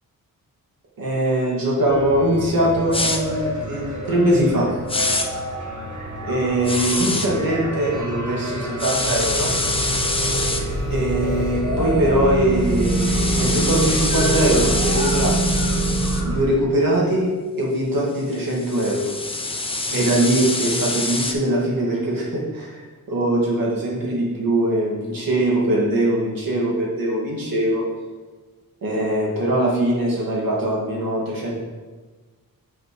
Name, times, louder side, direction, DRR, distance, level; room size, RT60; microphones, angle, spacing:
voice 1, 1.0-4.7 6.2-9.5 10.9-15.5 16.2-17.3 17.6-19.1 19.9-22.8 23.1-27.8 28.8-31.6, right 1 dB, 70° right, -4 dB, 2.2 m, -21 dB
sound 1, 1.9-16.4, right 2 dB, 55° right, 1.5 m, -25 dB
sound 2, 2.9-3.2 4.9-5.3 6.6-7.3 8.8-10.6 12.6-16.2 18.3-21.3, left 2 dB, 15° left, 0.6 m, -25 dB
7.4 x 5.8 x 3.2 m, 1.3 s
wide cardioid pair, 100°, 35 cm